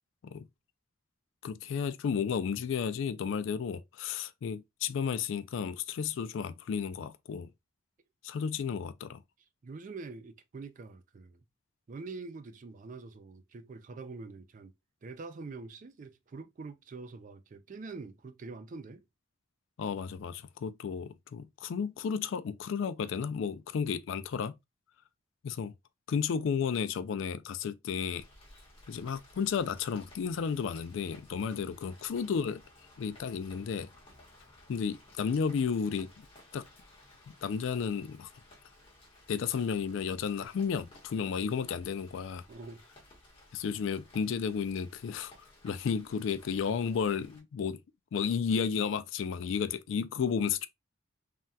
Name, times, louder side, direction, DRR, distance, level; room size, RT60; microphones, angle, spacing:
voice 1, 1.4-7.5 8.2-9.2 19.8-24.6 25.4-25.7 26.1-28.3 28.9-32.6 33.0-33.9 34.7-36.3 36.5-36.7 37.4-38.3 39.3-42.4 43.5-45.3 45.6-47.8 48.1-50.7, left 6 dB, 65° left, 0.3 m, -33 dB
voice 2, 9.6-11.4 11.9-14.7 15.0-19.0 31.6-31.8 42.5-42.9, right 3 dB, 40° right, 0.3 m, -45 dB
Rain, 28.2-47.4, left 1 dB, 25° left, 1.0 m, -57 dB
3.4 x 2.2 x 2.6 m
head